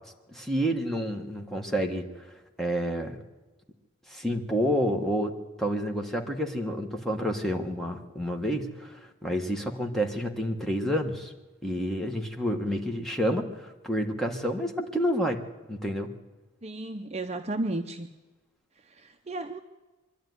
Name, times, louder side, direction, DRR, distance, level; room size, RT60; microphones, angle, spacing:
voice 1, 0.3-2.0 2.6-3.2 4.1-11.3 11.6-15.4 15.7-16.1, equal, ahead, 2 dB, 1.3 m, -29 dB
voice 2, 16.6-18.1 18.9-19.6, right 2 dB, 30° right, 6 dB, 0.6 m, -33 dB
23.0 x 12.0 x 9.5 m, 1.2 s
head